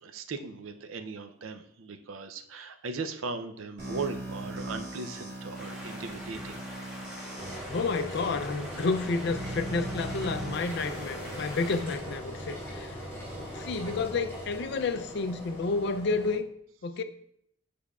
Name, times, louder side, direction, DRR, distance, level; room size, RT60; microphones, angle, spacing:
voice 1, 0.0-6.6 11.5-11.6 13.3-13.4, right 4 dB, 90° right, 0.5 m, -38 dB
sound 1, 3.8-7.5 8.3-8.4 9.3-11.8, right 2 dB, 60° right, 2.6 m, -39 dB
sound 2, 5.5-12.0, left 1 dB, 5° right, 1.3 m, -45 dB
Engine, 7.4-16.4, equal, 15° left, 2.5 m, -40 dB
voice 2, 7.7-12.9 13.5-16.4 16.8-17.0, left 4 dB, 55° left, 0.4 m, -30 dB
8.4 x 5.1 x 2.3 m
head